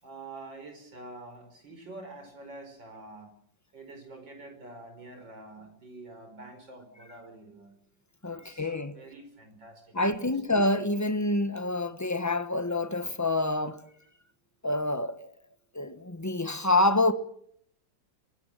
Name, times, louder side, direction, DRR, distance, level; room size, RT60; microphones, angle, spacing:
voice 1, 0.0-3.4 3.7-7.8 8.3-10.3, right 2 dB, 80° right, 5.8 m, -47 dB
voice 2, 8.2-8.9 9.9-13.8 14.6-15.3 15.7-17.1, left 2 dB, 10° left, 0.9 m, -27 dB
24.0 x 20.0 x 7.6 m
omnidirectional pair, 2.0 m